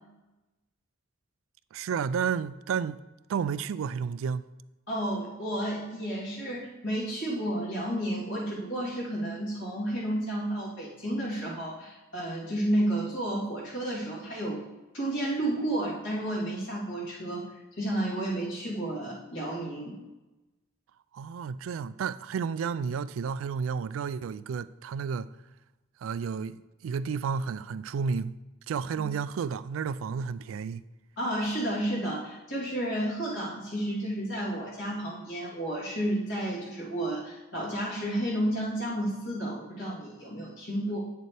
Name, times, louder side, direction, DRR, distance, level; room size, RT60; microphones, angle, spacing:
voice 1, 1.7-3.0 3.3-4.4 21.1-25.3 26.0-28.4 28.7-30.8, right 6 dB, 85° right, 0.3 m, -31 dB
voice 2, 4.9-14.6 14.9-17.4 17.8-20.0 31.2-41.0, right 1 dB, 70° left, 3.0 m, -31 dB
8.8 x 6.7 x 3.3 m
head